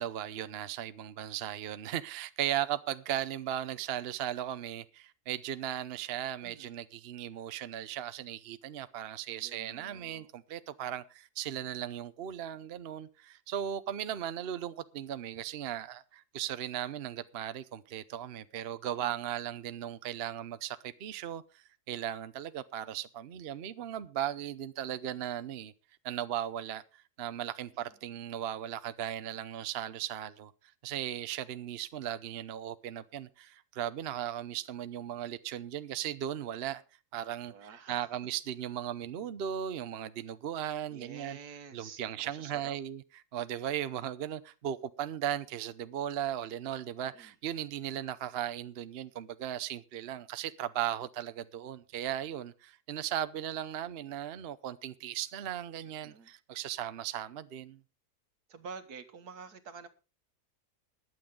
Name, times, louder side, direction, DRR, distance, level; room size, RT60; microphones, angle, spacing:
voice 1, 0.0-25.7 26.0-30.5 30.8-36.8 37.1-41.4 41.7-43.0 43.3-57.8, right 11 dB, 55° right, 0.8 m, -37 dB
voice 2, 6.4-6.7 9.3-10.3 19.0-19.1 37.5-38.0 40.9-42.8 47.0-47.3 56.0-56.3 58.5-59.9, right 5 dB, 80° right, 1.8 m, -48 dB
21.0 x 7.8 x 3.7 m
omnidirectional pair, 1.6 m